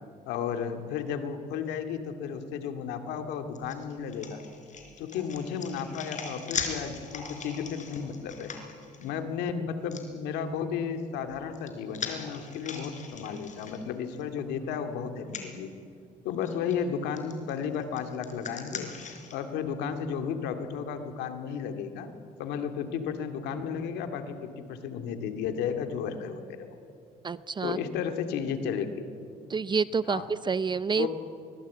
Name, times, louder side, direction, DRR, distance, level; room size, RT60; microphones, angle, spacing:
voice 1, 0.3-4.4 5.0-8.5 9.0-15.7 16.2-22.1 22.4-26.8 27.6-29.1 30.1-30.3 30.9-31.1, left 7 dB, 90° left, 7 dB, 2.3 m, -33 dB
sound 1, 3.5-9.1 9.9-10.0 11.2-14.2 14.6-14.7 15.2-15.5 16.4-16.7 17.2-19.4, left 6 dB, 45° left, 4.2 m, -40 dB
voice 2, 27.2-27.8 29.5-31.1, right 5 dB, 25° right, 16 dB, 0.6 m, -28 dB
24.0 x 19.5 x 8.5 m, 2.4 s
cardioid pair, 110°, 17 cm